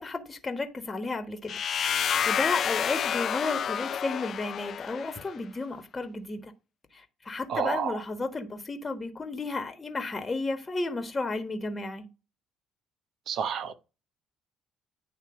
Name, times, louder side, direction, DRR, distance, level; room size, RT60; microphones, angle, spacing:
voice 1, 0.0-6.5 6.9-12.1, left 3 dB, 30° left, 1.3 m, -33 dB
sound 1, 1.5-5.3, left 8 dB, 55° left, 0.3 m, -29 dB
voice 2, 7.5-7.9 13.3-13.7, right 7 dB, 60° right, 0.9 m, -29 dB
9.3 x 3.2 x 4.9 m
hypercardioid pair, 55°, 0 cm